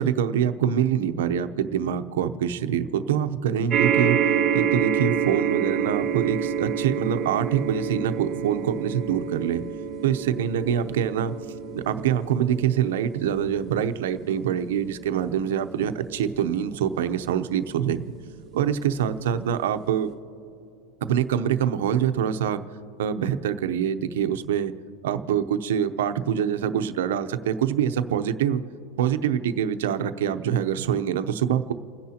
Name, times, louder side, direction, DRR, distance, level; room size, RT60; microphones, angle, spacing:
voice 1, 0.0-4.2 4.5-9.6 10.0-11.3 11.7-18.1 18.5-20.1 21.0-22.6 23.0-24.7 25.0-28.6 29.0-31.7, right 9 dB, 90° right, 10 dB, 0.7 m, -25 dB
sound 1, 3.7-18.3 19.0-19.1 19.4-19.5, right 8 dB, 20° right, 1.5 m, -28 dB
30.0 x 10.5 x 2.9 m, 2.7 s
supercardioid pair, 170°, 0 cm